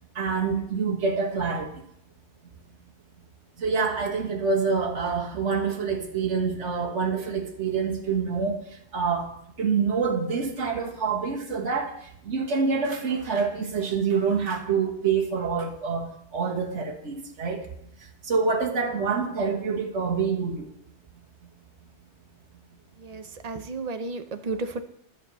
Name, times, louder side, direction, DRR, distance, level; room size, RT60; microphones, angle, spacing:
voice 1, 0.2-1.8 3.6-9.3 9.6-17.7 18.2-20.7, right 5 dB, 90° right, 0 dB, 1.8 m, -26 dB
voice 2, 23.0-24.8, right 3 dB, 40° right, 9 dB, 0.9 m, -33 dB
11.0 x 5.8 x 8.0 m, 0.71 s
omnidirectional pair, 1.2 m